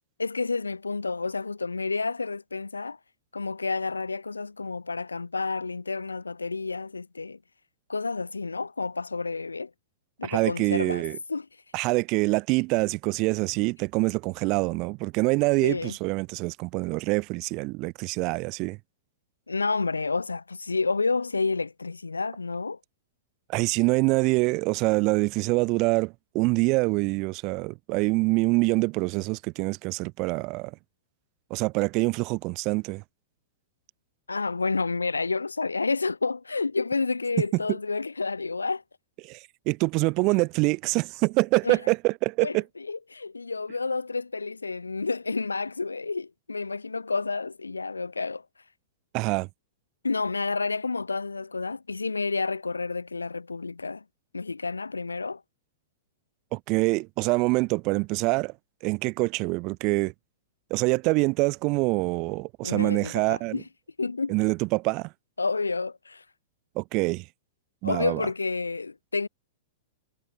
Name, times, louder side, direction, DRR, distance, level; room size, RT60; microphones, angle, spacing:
voice 1, 0.2-3.0 3.3-7.4 7.9-9.7 10.2-11.0 11.3-11.5 15.6-16.0 19.5-22.8 34.3-38.8 41.6-41.8 42.4-42.6 42.9-48.4 50.0-54.0 54.3-55.4 62.6-63.6 64.0-64.3 65.4-66.2 67.8-69.3, left 4 dB, 80° left, 2.7 m, -30 dB
voice 2, 10.3-11.2 11.7-18.8 23.5-30.7 31.5-33.0 39.2-39.4 39.7-42.6 49.1-49.5 56.5-58.5 58.8-60.1 60.7-63.6 64.3-65.1 66.8-67.2 67.8-68.2, right 25 dB, 40° right, 2.1 m, -25 dB
figure-of-eight pair, 100°, 0 cm